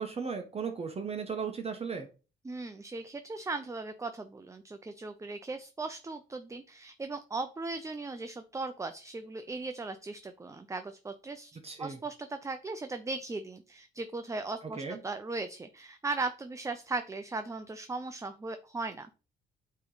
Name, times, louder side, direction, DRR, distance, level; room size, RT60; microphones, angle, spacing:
voice 1, 0.0-2.1 11.6-12.0 14.7-15.0, right 5 dB, 30° right, 4 dB, 1.1 m, -36 dB
voice 2, 2.4-11.5 11.8-19.1, right 3 dB, 15° right, 8 dB, 0.5 m, -38 dB
8.3 x 3.1 x 3.9 m, 0.33 s
cardioid pair, 90°, 20 cm